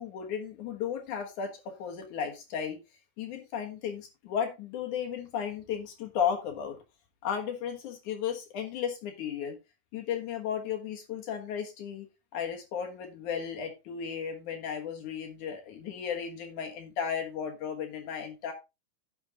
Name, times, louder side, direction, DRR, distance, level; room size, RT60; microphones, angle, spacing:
voice 1, 0.0-2.8 3.2-6.8 7.2-9.6 9.9-12.1 12.3-18.5, left 8 dB, 65° left, 3 dB, 2.0 m, -34 dB
10.5 x 7.1 x 3.7 m, 0.25 s
omnidirectional pair, 5.3 m